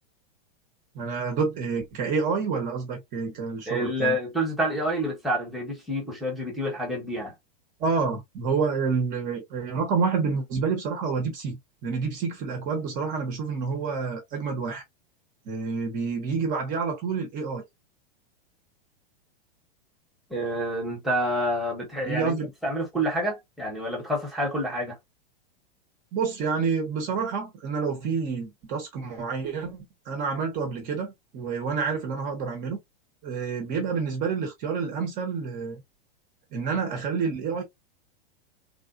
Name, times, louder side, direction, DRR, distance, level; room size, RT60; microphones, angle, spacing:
voice 1, 0.9-4.2 7.8-14.8 15.5-17.6 22.0-22.5 26.1-32.8 33.2-35.8 36.5-37.6, right 5 dB, 25° right, 1.0 m, -28 dB
voice 2, 3.7-7.3 20.3-25.0, equal, ahead, 1.1 m, -28 dB
3.5 x 2.4 x 2.4 m
supercardioid pair, 160°, 30 cm